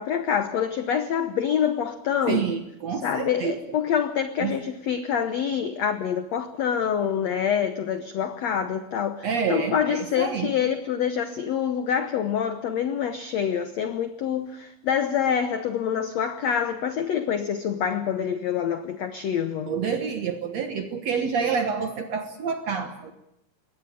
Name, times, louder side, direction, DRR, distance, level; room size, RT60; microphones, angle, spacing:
voice 1, 0.0-2.4 3.0-19.7, left 8 dB, 75° left, 1.5 m, -26 dB
voice 2, 2.3-3.8 4.4-4.6 9.2-10.5 19.7-23.1, right 6 dB, 60° right, 1.9 m, -28 dB
22.0 x 18.0 x 8.5 m
omnidirectional pair, 4.5 m